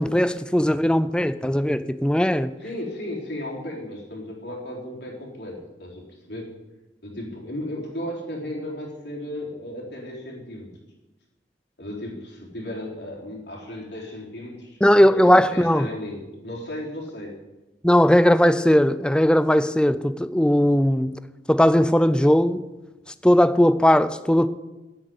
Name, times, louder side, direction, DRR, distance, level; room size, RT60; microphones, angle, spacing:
voice 1, 0.0-2.5 14.8-15.9 17.8-21.1 21.5-22.6 23.2-24.5, equal, 5° left, 0.5 m, -18 dB
voice 2, 2.6-6.5 7.0-10.7 11.8-14.8 15.2-17.3, left 1 dB, 65° left, 3.8 m, -35 dB
10.0 x 8.1 x 9.4 m
head